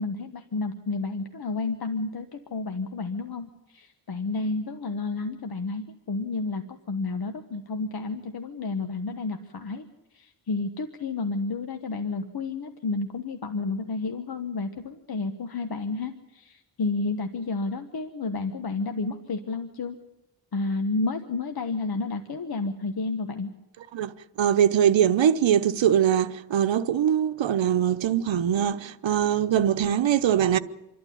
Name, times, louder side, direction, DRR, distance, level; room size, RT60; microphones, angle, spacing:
voice 1, 0.0-6.6 6.9-9.9 10.1-20.0 20.5-23.5, left 3 dB, 55° left, 1.3 m, -31 dB
voice 2, 23.9-30.6, right 9 dB, 75° right, 1.0 m, -22 dB
27.0 x 12.0 x 10.0 m
wide cardioid pair, 125°, 45 cm